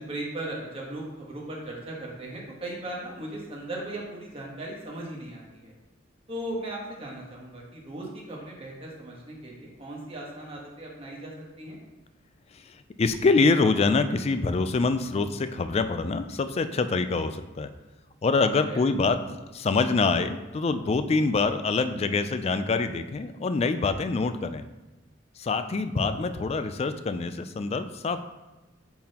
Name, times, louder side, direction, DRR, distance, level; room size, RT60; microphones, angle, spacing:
voice 1, 0.0-5.7 6.3-11.8 18.7-18.8, right 1 dB, 30° right, -3 dB, 1.3 m, -37 dB
voice 2, 12.5-17.7 18.2-19.2 19.5-24.6 25.4-28.2, left 4 dB, 35° left, 10 dB, 0.3 m, -25 dB
8.4 x 3.8 x 2.9 m, 1.1 s
head